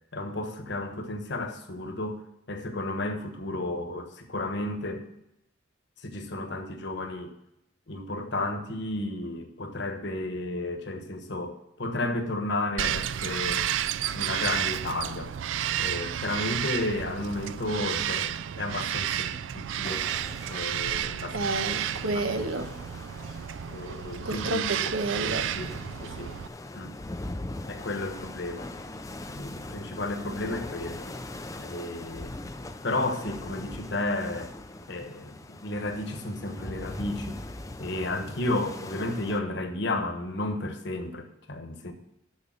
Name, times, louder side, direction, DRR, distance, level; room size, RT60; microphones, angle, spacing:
voice 1, 0.1-2.2 2.5-5.1 6.0-7.3 7.9-13.7 14.1-15.3 15.8-20.1 20.5-21.4 22.1-22.6 23.7-24.9 25.2-25.7 26.0-26.3 26.7-27.0 27.7-28.7 29.3-31.1 31.6-32.3 32.8-34.5 34.9-37.4 37.8-41.9, left 2 dB, 55° left, 6 dB, 1.2 m, -33 dB
Bird vocalization bird call bird song, 12.8-26.5, right 10 dB, 65° right, 0.3 m, -31 dB
sound 1, 19.8-39.4, left 2 dB, 15° left, 0.4 m, -41 dB
voice 2, 21.3-22.7 24.2-25.5, right 2 dB, 85° right, 7 dB, 1.0 m, -30 dB
6.8 x 6.6 x 7.4 m, 0.84 s
head